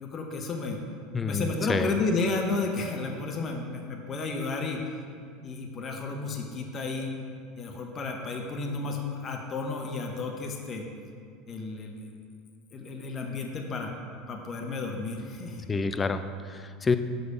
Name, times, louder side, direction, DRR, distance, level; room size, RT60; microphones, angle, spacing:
voice 1, 0.0-0.8 1.2-4.9 5.4-7.1 7.6-10.9 11.5-12.1 12.7-13.9 14.3-15.6, left 3 dB, 35° left, 2 dB, 0.9 m, -32 dB
voice 2, 1.1-1.9 15.7-17.0, left 4 dB, 20° left, 10 dB, 0.4 m, -28 dB
6.1 x 5.3 x 4.9 m, 2.2 s
hypercardioid pair, 80°, 0 cm